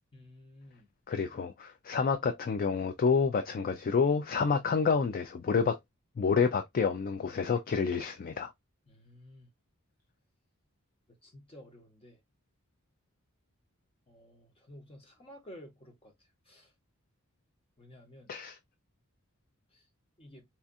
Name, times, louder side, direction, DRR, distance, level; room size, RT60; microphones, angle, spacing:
voice 1, 0.1-0.9 8.9-9.5 11.1-12.2 14.1-16.7 17.8-18.3 19.7-19.9 20.2-20.4, equal, 25° left, 1.1 m, -53 dB
voice 2, 1.1-5.8 6.2-8.5 18.3-18.6, left 5 dB, 40° left, 0.4 m, -28 dB
4.3 x 2.4 x 2.6 m
head